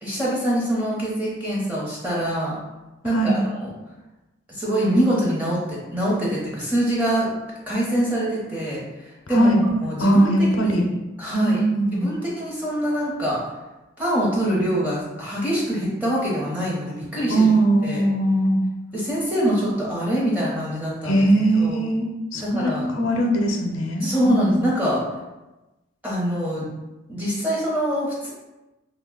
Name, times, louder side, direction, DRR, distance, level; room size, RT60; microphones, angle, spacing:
voice 1, 0.0-2.6 3.0-3.7 4.5-7.3 7.7-8.8 9.3-9.5 9.8-10.7 11.2-11.6 12.0-13.4 14.0-17.5 17.8-18.0 18.9-21.2 21.6-21.8 22.4-22.9 24.0-25.0 26.0-26.7 27.1-28.3, equal, 10° right, -6 dB, 0.8 m, -24 dB
voice 2, 9.3-9.6 10.0-10.9 11.3-12.1 17.3-18.6 21.0-24.5, right 1 dB, 90° left, 2 dB, 0.5 m, -20 dB
2.7 x 2.1 x 3.7 m, 1.1 s
head